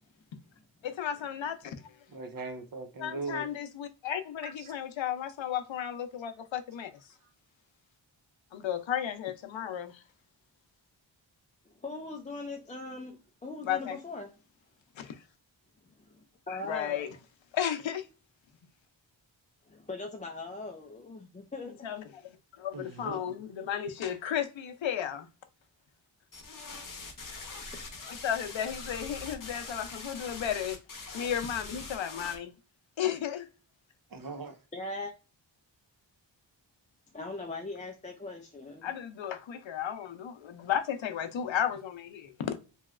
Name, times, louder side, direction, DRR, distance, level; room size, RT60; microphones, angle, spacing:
voice 1, 0.8-1.8 3.0-6.9 8.5-10.0 13.6-14.0 15.0-15.2 16.5-17.1 17.5-18.1 21.8-22.3 22.6-25.3 28.2-30.8 31.1-32.5 33.0-33.5 38.8-42.6, left 9 dB, 80° left, 0.6 m, -34 dB
voice 2, 2.1-3.5 4.4-4.7 22.7-23.3 34.1-34.6, right 3 dB, 50° right, 0.6 m, -40 dB
voice 3, 11.8-14.3 16.0-17.1 19.7-21.7 27.7-27.8 34.7-35.1 37.1-38.9, left 3 dB, 20° left, 0.3 m, -40 dB
sound 1, 26.3-32.4, left 3 dB, 45° left, 0.8 m, -43 dB
3.0 x 2.7 x 2.4 m
wide cardioid pair, 110°, 45 cm